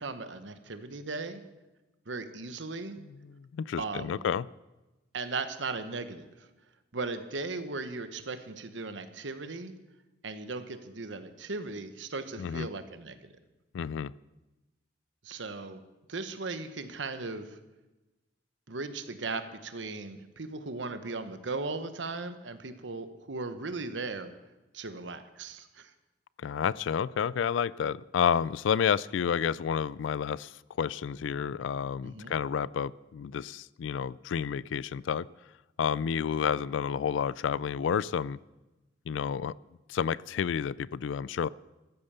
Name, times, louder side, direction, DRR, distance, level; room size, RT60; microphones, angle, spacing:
voice 1, 0.0-1.4 2.1-3.0 3.8-4.2 5.1-6.5 6.9-9.7 10.2-13.2 15.2-15.8 16.1-17.6 18.7-24.3 24.7-25.9 32.0-32.3, right 3 dB, 85° right, 10 dB, 1.1 m, -37 dB
voice 2, 3.0-4.5 12.4-12.7 13.7-14.1 26.4-35.3 35.8-38.4 39.1-39.5 39.9-41.5, left 7 dB, 90° left, 22 dB, 0.3 m, -30 dB
13.5 x 8.9 x 6.8 m, 1.1 s
head